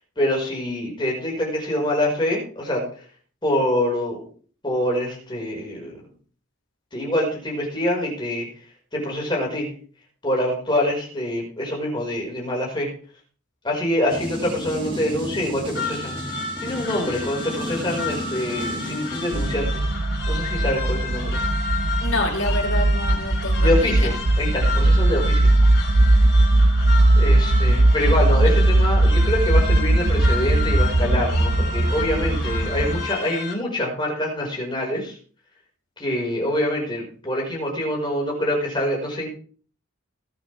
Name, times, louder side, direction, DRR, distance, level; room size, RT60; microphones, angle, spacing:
voice 1, 0.2-2.8 3.4-4.2 4.6-6.0 6.9-8.5 8.9-9.7 10.2-12.9 13.6-16.1 16.6-19.8 20.3-21.4 23.6-25.5 26.9-35.2 36.0-39.3, left 1 dB, 20° left, -2 dB, 5.5 m, -25 dB
sound 1, 14.1-19.5, left 1 dB, 25° right, 4.6 m, -32 dB
sound 2, 15.7-33.5, left 4 dB, 45° left, 5.3 m, -32 dB
sound 3, 19.3-33.1, right 1 dB, 55° right, 0.9 m, -19 dB
voice 2, 22.0-24.1 28.4-28.5, left 2 dB, 65° left, -2 dB, 5.5 m, -27 dB
20.0 x 9.4 x 3.6 m, 0.43 s
head